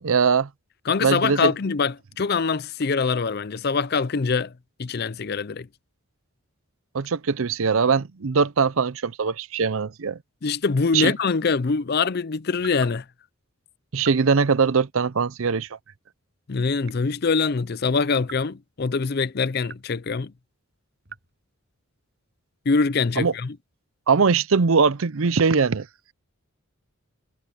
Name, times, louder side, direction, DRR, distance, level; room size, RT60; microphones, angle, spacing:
voice 1, 0.0-0.5 1.0-1.5 6.9-10.2 10.9-11.1 13.9-15.7 23.2-23.3 24.1-25.9, right 5 dB, 70° right, 0.6 m, -21 dB
voice 2, 0.9-4.5 4.8-5.7 10.4-13.0 16.5-20.3 22.7-23.6, left 4 dB, 45° left, 0.5 m, -24 dB
sound 1, 12.6-13.0 14.0-14.3 15.4-15.8 16.8-17.2 18.2-18.5 19.6-20.0 21.1-21.3, right 6 dB, 50° right, 6.6 m, -43 dB
head